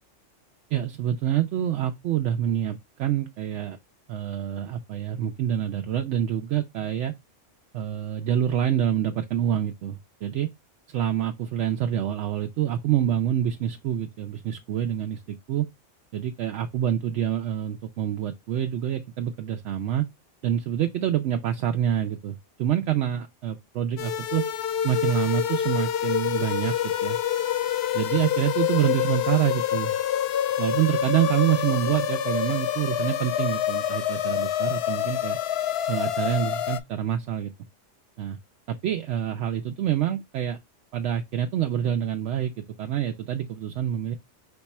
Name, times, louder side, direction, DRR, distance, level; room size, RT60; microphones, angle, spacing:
voice 1, 0.7-3.8 4.1-7.1 7.7-10.5 10.9-15.7 16.1-20.1 20.4-24.4 24.8-26.8 27.0-27.2 27.9-30.0 30.6-35.4 35.9-37.5 38.2-38.4 38.7-40.6 40.9-44.2, right 10 dB, 70° right, 0.8 m, -26 dB
sound 1, 24.0-36.8, left 10 dB, 65° left, 0.7 m, -27 dB
5.2 x 2.2 x 4.1 m
omnidirectional pair, 1.3 m